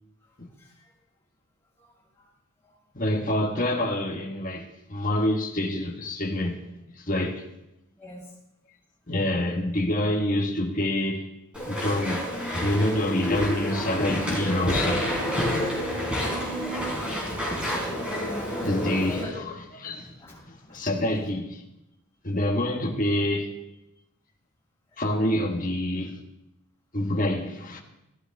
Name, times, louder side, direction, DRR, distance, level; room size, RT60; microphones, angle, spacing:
voice 1, 0.2-0.9 1.8-2.3 2.6-2.8 7.9-8.4 16.6-19.5 19.9-21.3 24.9-25.1, left 1 dB, 10° left, 6.0 m, -43 dB
voice 2, 2.9-6.6 7.0-7.4 9.1-11.3 11.6-15.1 18.6-19.2 19.8-20.1 20.5-21.6 22.2-23.6 25.0-26.2 26.9-27.8, left 1 dB, 40° left, 1.6 m, -27 dB
Walk footsteps / Chatter / Squeak, 11.5-19.2, equal, 5° right, 4.9 m, -29 dB
15.0 x 14.5 x 3.5 m
head